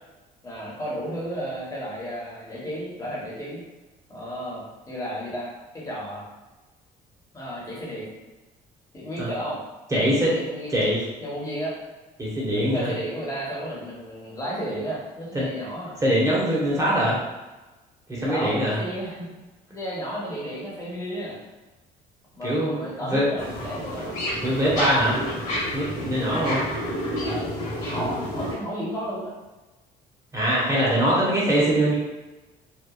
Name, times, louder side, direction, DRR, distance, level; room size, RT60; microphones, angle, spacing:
voice 1, 0.4-3.6 4.1-6.2 7.3-8.1 8.9-9.6 9.9-10.7 11.2-11.8 12.5-16.0 18.2-19.3 19.7-21.4 22.3-24.1 26.4-26.6 27.2-29.3 30.7-31.3, equal, 20° left, -6 dB, 1.0 m, -33 dB
voice 2, 9.9-10.3 10.7-11.0 12.2-12.9 15.3-15.5 16.0-17.2 18.1-18.8 22.4-22.7 23.0-23.3 24.4-25.2 25.7-26.7 30.3-31.9, right 1 dB, 20° right, -7 dB, 1.0 m, -22 dB
sound 1, 23.4-28.5, equal, 45° left, 1.3 m, -30 dB
3.0 x 2.2 x 2.4 m, 1.1 s
cardioid pair, 110°, 17 cm